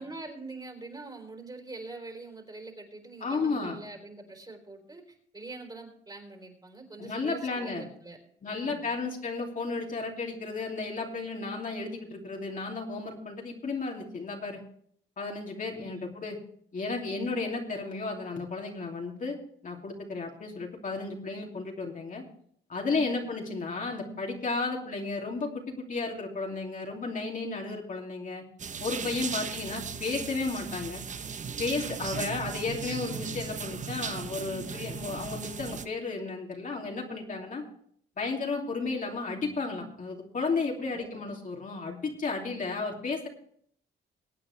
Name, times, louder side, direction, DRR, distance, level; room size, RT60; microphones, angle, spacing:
voice 1, 0.0-8.2 8.4-9.0 15.7-16.1 22.9-23.3 29.1-29.5 31.7-32.2 40.9-41.2, right 3 dB, 20° right, 3 dB, 3.8 m, -45 dB
voice 2, 3.2-3.8 7.0-7.9 8.4-14.6 15.2-16.4 16.7-19.4 19.6-22.2 22.7-28.4 28.8-31.0 31.6-37.6 38.2-43.3, left 3 dB, 40° left, 0 dB, 2.8 m, -33 dB
sound 1, 28.6-35.9, right 6 dB, 40° right, 0.9 m, -37 dB
22.5 x 8.7 x 3.3 m, 0.64 s
cardioid pair, 90°, 20 cm